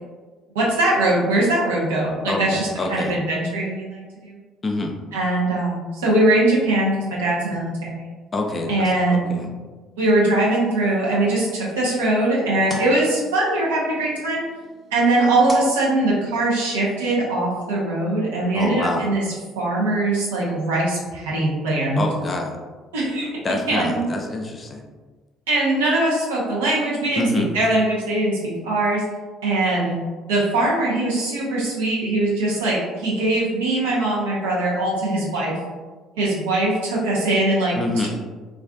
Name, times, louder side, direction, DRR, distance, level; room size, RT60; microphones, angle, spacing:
voice 1, 0.5-4.4 5.1-8.1 8.7-9.4 10.0-14.4 14.9-19.2 19.6-22.0 22.9-23.4 23.7-24.0 25.5-27.3 27.5-29.0 29.4-30.0 30.3-35.6 36.2-37.7, right 2 dB, 80° right, -5 dB, 0.6 m, -21 dB
voice 2, 2.3-3.2 4.6-5.0 8.3-9.5 18.5-19.1 22.0-22.6 23.4-24.9 27.2-27.5 37.8-38.1, left 2 dB, 35° left, 2 dB, 0.4 m, -26 dB
sound 1, 11.3-16.7, right 1 dB, 30° right, 0.8 m, -40 dB
2.4 x 2.3 x 2.2 m, 1.3 s
hypercardioid pair, 55°, 0 cm